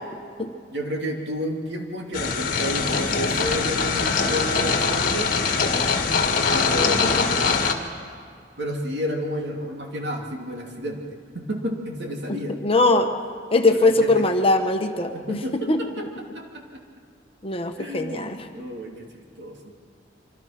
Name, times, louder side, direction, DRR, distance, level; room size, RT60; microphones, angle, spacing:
voice 1, 0.7-5.3 6.4-7.3 8.6-11.0 11.3-12.6 13.7-14.2 15.1-16.1 16.3-16.8 17.8-19.7, equal, 65° right, 1 dB, 3.0 m, -31 dB
sound 1, 2.1-7.7, left 4 dB, 50° left, 1.9 m, -22 dB
voice 2, 12.3-13.1 13.5-15.8 17.4-18.4, left 2 dB, 30° left, 5 dB, 1.3 m, -21 dB
25.5 x 25.0 x 6.0 m, 2.2 s
head